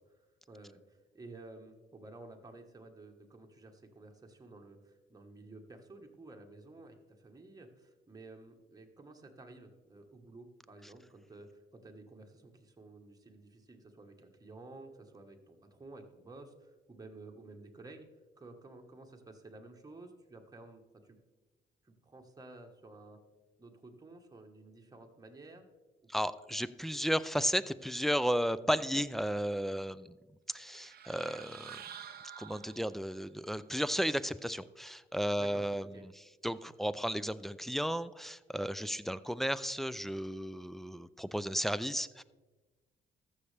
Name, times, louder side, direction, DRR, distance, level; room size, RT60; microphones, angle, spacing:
voice 1, 0.5-18.1 18.4-21.2 21.8-23.2 23.6-25.7 35.4-35.6 35.9-36.0, right 2 dB, 20° right, 3 dB, 1.3 m, -52 dB
voice 2, 26.1-30.2 30.5-31.8 32.4-35.9 36.2-42.2, equal, ahead, 13 dB, 0.3 m, -34 dB
sound 1, 30.6-33.2, right 9 dB, 50° right, 0.7 m, -49 dB
14.0 x 6.5 x 3.4 m, 1.2 s
cardioid pair, 90°, 20 cm